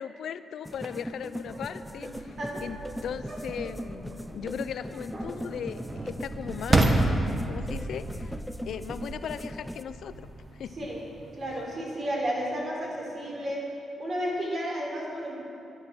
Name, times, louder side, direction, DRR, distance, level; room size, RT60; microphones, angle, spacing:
voice 1, 0.0-2.4 2.6-7.2 7.5-8.4 8.7-10.3 10.6-10.7, left 8 dB, 75° left, 12 dB, 0.5 m, -38 dB
sound 1, 0.6-9.8, equal, 5° left, 0.4 m, -40 dB
sound 2, 0.7-11.6, right 2 dB, 25° right, 1.1 m, -32 dB
voice 2, 11.3-13.6 14.0-15.4, equal, 45° right, -2 dB, 3.9 m, -32 dB
11.5 x 10.5 x 7.5 m, 2.6 s
cardioid pair, 115°, 0 cm